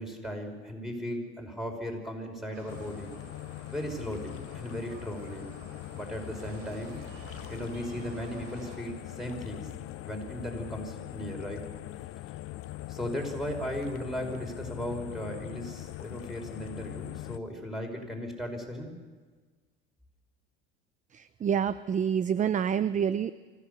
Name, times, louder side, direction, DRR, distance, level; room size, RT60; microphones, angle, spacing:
voice 1, 0.0-3.1 3.6-5.5 5.9-7.0 7.5-9.7 10.0-11.6 12.9-18.9, equal, ahead, 2 dB, 5.3 m, -36 dB
sound 1, 2.5-8.8, right 4 dB, 75° right, 4.8 m, -51 dB
sound 2, 2.7-17.4, left 16 dB, 45° left, 0.7 m, -42 dB
voice 2, 21.1-23.3, right 8 dB, 25° right, 15 dB, 0.6 m, -27 dB
25.5 x 15.0 x 6.9 m, 1.4 s
supercardioid pair, 100°, 30 cm